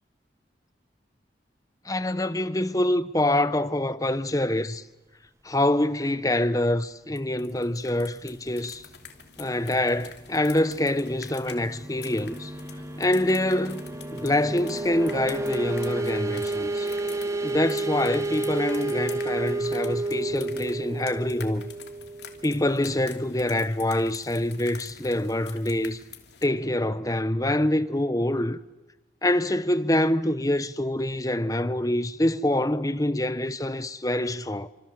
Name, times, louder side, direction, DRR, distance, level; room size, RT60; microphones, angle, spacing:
voice 1, 1.8-4.8 5.4-8.8 9.4-12.5 13.0-13.8 14.1-16.9 17.4-21.7 22.4-26.0 26.4-28.6 29.2-34.7, left 1 dB, 20° left, 1.0 m, -25 dB
sound 1, 7.2-26.5, left 7 dB, 65° left, 2.9 m, -47 dB
sound 2, 10.6-23.1, right 2 dB, 15° right, 1.3 m, -31 dB
29.5 x 26.0 x 7.7 m
head